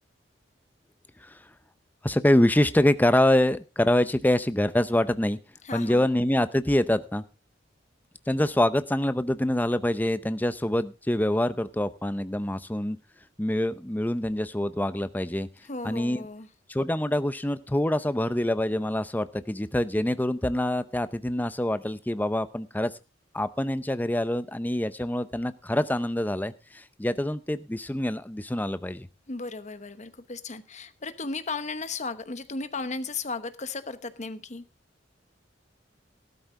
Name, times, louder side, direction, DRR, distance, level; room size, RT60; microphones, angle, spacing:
voice 1, 2.0-5.4 5.7-7.2 8.3-13.0 13.4-15.5 15.8-16.3 16.7-22.9 23.3-29.1, left 1 dB, 10° left, 0.6 m, -25 dB
voice 2, 5.6-6.0 15.7-16.5 29.3-34.6, left 3 dB, 40° left, 1.0 m, -35 dB
14.5 x 12.5 x 3.8 m
head